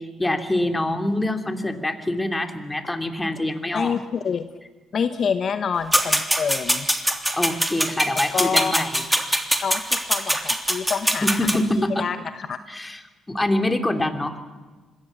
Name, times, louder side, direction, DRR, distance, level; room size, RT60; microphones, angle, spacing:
voice 1, 0.0-4.0 7.3-9.0 11.2-12.1 12.7-13.0 13.3-14.4, left 1 dB, 15° left, 6 dB, 3.1 m, -25 dB
voice 2, 3.7-4.5 4.9-6.9 8.3-8.8 9.6-11.3 11.5-11.6 12.0-12.6, left 6 dB, 55° left, 10 dB, 1.1 m, -27 dB
sound 1, 5.9-11.6, equal, 5° right, 3.3 m, -23 dB
26.5 x 21.0 x 7.4 m, 1.3 s
hypercardioid pair, 45°, 0 cm